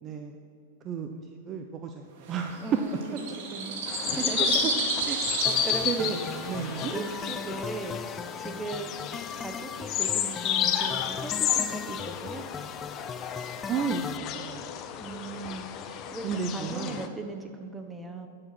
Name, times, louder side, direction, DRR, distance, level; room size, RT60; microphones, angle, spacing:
voice 1, 0.0-0.4 0.8-3.0 4.3-4.7 5.1-5.2 5.8-6.9 13.7-14.7 16.2-17.1, right 6 dB, 30° right, 5 dB, 0.7 m, -32 dB
sound 1, 2.2-7.4, right 4 dB, 60° right, 2.4 m, -33 dB
voice 2, 2.6-4.7 5.1-6.1 6.9-8.0 8.4-9.0 9.3-12.4 15.0-15.7 16.1-18.3, right 3 dB, 10° right, 5 dB, 1.3 m, -38 dB
sound 2, 3.9-17.1, left 10 dB, 40° left, 0.9 m, -32 dB
sound 3, 5.4-14.2, left 6 dB, 20° left, 0.3 m, -39 dB
12.0 x 7.8 x 6.0 m, 2.5 s
hypercardioid pair, 125°, 0 cm